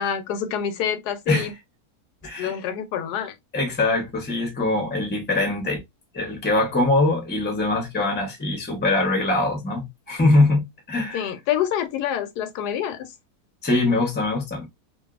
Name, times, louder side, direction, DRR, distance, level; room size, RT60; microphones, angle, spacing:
voice 1, 0.0-1.5 2.4-3.3 11.1-13.1, left 9 dB, 85° left, 1.2 m, -27 dB
voice 2, 2.2-2.5 3.5-5.8 6.1-11.2 13.6-14.6, left 2 dB, 15° left, 0.4 m, -22 dB
2.7 x 2.6 x 2.3 m
omnidirectional pair, 1.7 m